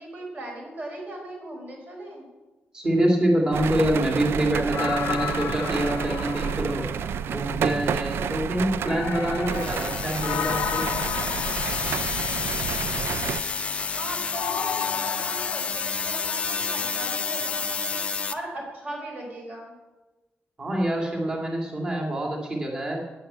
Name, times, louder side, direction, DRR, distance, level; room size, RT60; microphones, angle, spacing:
voice 1, 0.0-2.3 13.8-18.0 18.3-19.7, right 1 dB, 45° right, 0 dB, 4.9 m, -38 dB
voice 2, 2.7-6.9 7.3-10.8 20.6-23.0, right 1 dB, 20° right, 0 dB, 2.1 m, -25 dB
sound 1, 3.5-13.4, right 7 dB, 75° right, 0.4 m, -30 dB
sound 2, 4.7-7.5 8.8-12.7 14.3-15.7, left 9 dB, 75° left, 0.5 m, -33 dB
sound 3, 9.5-18.3, left 5 dB, 30° left, 0.6 m, -29 dB
11.0 x 9.6 x 8.5 m, 1.2 s
wide cardioid pair, 170°, 4 cm